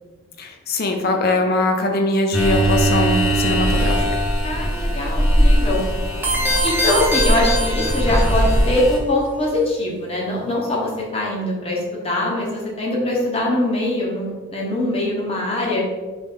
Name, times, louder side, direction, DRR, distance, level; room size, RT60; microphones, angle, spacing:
voice 1, 0.4-4.1, left 2 dB, 45° left, 4 dB, 0.5 m, -21 dB
sound 1, 2.3-9.0, equal, 75° left, 0.9 m, -20 dB
voice 2, 4.4-5.8 6.6-15.8, left 1 dB, 30° left, -3 dB, 0.9 m, -22 dB
sound 2, 6.2-8.6, equal, 10° right, 0.7 m, -23 dB
4.0 x 3.2 x 3.5 m, 1.3 s
head